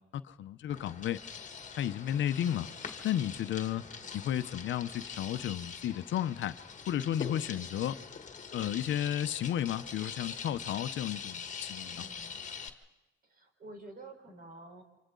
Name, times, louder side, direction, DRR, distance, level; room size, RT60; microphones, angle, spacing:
voice 1, 0.1-1.2 1.8-2.8 3.0-3.8 4.1-6.6 6.9-8.0 8.5-12.0, left 11 dB, 70° left, 12 dB, 0.8 m, -33 dB
sound 1, 0.7-12.7, left 6 dB, 40° left, 1.6 m, -44 dB
voice 2, 3.7-4.2 12.0-12.4 13.3-14.8, right 2 dB, 50° right, 4 dB, 4.4 m, -50 dB
28.5 x 25.5 x 3.9 m, 1.0 s
cardioid pair, 90°, 20 cm